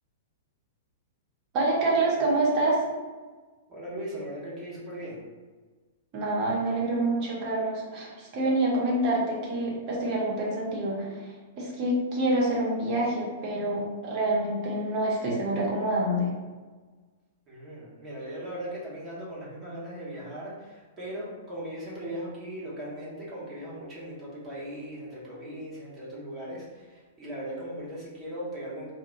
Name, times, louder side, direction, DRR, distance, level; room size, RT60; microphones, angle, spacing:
voice 1, 1.5-2.8 6.1-16.3, right 1 dB, 40° right, -4 dB, 0.9 m, -27 dB
voice 2, 3.7-5.2 17.5-28.9, right 1 dB, 25° right, -8 dB, 1.1 m, -38 dB
2.6 x 2.1 x 2.5 m, 1.4 s
figure-of-eight pair, 105°, 0 cm